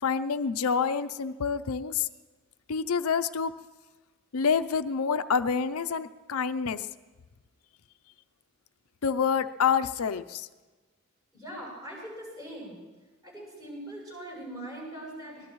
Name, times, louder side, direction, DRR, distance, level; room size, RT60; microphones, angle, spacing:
voice 1, 0.0-2.1 2.7-3.5 4.3-6.9 9.0-10.5, left 6 dB, 85° left, 11 dB, 0.6 m, -27 dB
voice 2, 11.3-12.8 13.2-15.5, right 1 dB, 15° right, -4 dB, 7.1 m, -41 dB
24.5 x 19.0 x 3.1 m, 1.2 s
head